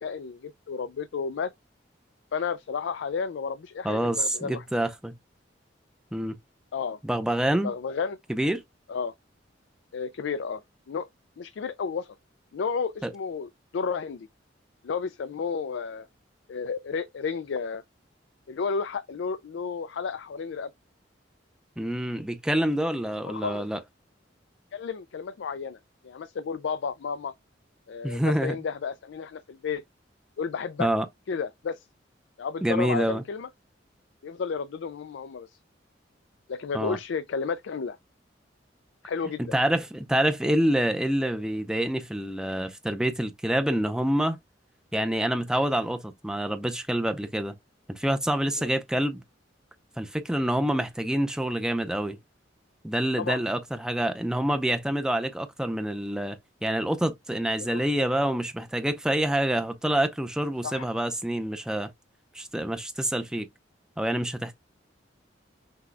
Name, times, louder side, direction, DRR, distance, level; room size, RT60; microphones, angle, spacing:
voice 1, 0.0-1.5 2.3-4.6 6.7-7.0 7.6-8.2 8.9-9.1 9.9-10.6 10.9-11.1 11.4-12.2 12.5-14.3 14.8-16.1 16.5-17.8 18.5-20.7 23.2-23.6 24.7-25.8 26.0-27.3 27.9-29.8 30.4-30.9 31.3-31.8 32.4-33.5 34.2-35.6 36.5-38.0 39.0-39.4 48.6-48.7 53.2-53.4 57.6-57.8 60.6-60.9, left 5 dB, 75° left, 0.4 m, -32 dB
voice 2, 3.8-5.2 6.1-6.4 7.0-7.7 8.3-8.6 13.0-13.1 21.8-23.8 28.0-28.6 30.8-31.1 32.6-33.2 36.7-37.0 39.4-44.4 44.9-47.5 47.9-49.2 50.0-52.2 52.8-56.4 56.6-61.9 62.3-63.5 64.0-64.5, right 1 dB, 5° right, 0.5 m, -27 dB
6.1 x 2.2 x 3.3 m
head